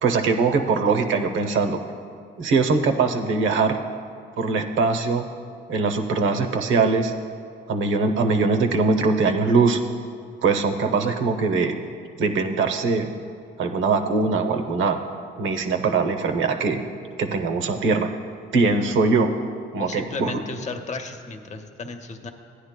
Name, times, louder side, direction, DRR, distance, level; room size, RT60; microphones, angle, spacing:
voice 1, 0.0-1.8 2.4-3.8 4.4-5.2 5.7-7.1 7.7-9.8 10.4-11.8 12.2-13.1 13.6-15.0 15.4-16.8 17.2-18.1 18.5-19.3 19.7-20.4, right 4 dB, 75° right, 6 dB, 0.7 m, -21 dB
voice 2, 19.8-22.3, left 3 dB, 35° left, 6 dB, 0.7 m, -34 dB
13.5 x 9.7 x 2.2 m, 2.3 s
cardioid pair, 90°, 20 cm